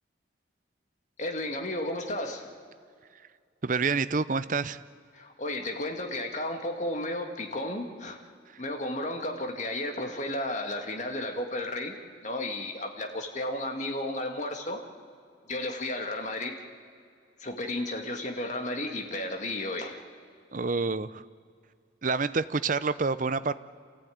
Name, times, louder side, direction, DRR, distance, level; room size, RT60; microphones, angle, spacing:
voice 1, 1.2-2.5 5.1-8.2 8.6-11.9 12.2-14.8 15.5-16.6 17.4-20.0, left 1 dB, 40° left, 4 dB, 1.9 m, -33 dB
voice 2, 3.6-4.8 20.5-21.2 22.0-23.5, right 4 dB, 40° right, 15 dB, 0.6 m, -28 dB
27.5 x 15.0 x 9.3 m, 2.2 s
head